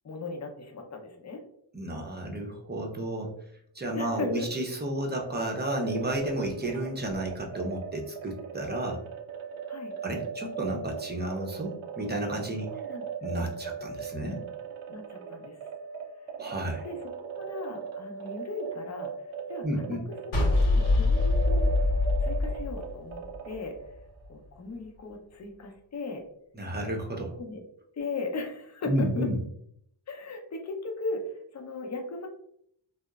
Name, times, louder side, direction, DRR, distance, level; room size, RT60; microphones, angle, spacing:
voice 1, 0.0-1.4 3.9-4.5 9.7-9.9 12.7-13.0 14.9-15.6 16.6-19.8 20.1-20.2 20.5-21.8 22.2-23.8 24.3-26.2 27.4-27.6 28.0-29.3 30.1-32.3, left 3 dB, 35° left, 3 dB, 0.6 m, -37 dB
voice 2, 1.7-3.3 3.7-9.0 10.0-12.7 13.2-14.4 16.4-16.9 19.6-20.0 26.6-27.4 28.9-29.4, right 1 dB, 20° right, 1 dB, 0.6 m, -32 dB
sound 1, 5.8-24.2, right 6 dB, 80° right, 0.6 m, -39 dB
sound 2, 20.3-23.6, left 2 dB, 75° left, 1.0 m, -24 dB
2.8 x 2.0 x 2.3 m, 0.70 s
cardioid pair, 60°, 47 cm